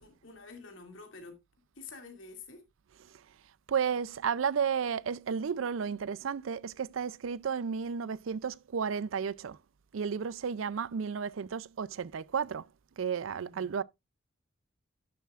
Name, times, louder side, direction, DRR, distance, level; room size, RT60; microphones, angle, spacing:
voice 1, 0.0-1.4 1.8-2.6 13.3-13.7, left 4 dB, 75° left, 2.5 m, -48 dB
voice 2, 3.7-9.6 9.9-12.7 13.0-13.8, right 6 dB, 85° right, 0.4 m, -33 dB
11.5 x 7.3 x 2.4 m
head